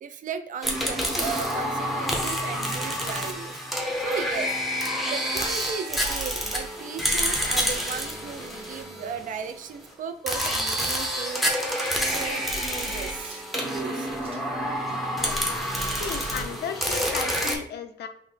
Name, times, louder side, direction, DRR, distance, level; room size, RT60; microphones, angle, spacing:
voice 1, 0.0-3.6 4.0-4.5 5.1-11.7 12.0-14.1, right 6 dB, 50° right, 9 dB, 0.4 m, -36 dB
sound 1, 0.6-9.5 10.3-17.5, equal, ahead, 0.6 m, -28 dB
sound 2, 11.8-12.1 13.1-13.5 14.2-14.5 16.1-16.4 17.0-17.3, right 2 dB, 35° right, 0.9 m, -46 dB
voice 2, 15.2-15.6 16.0-18.1, left 8 dB, 70° left, 8 dB, 0.5 m, -35 dB
5.7 x 2.0 x 3.2 m, 0.67 s
wide cardioid pair, 170°, 18 cm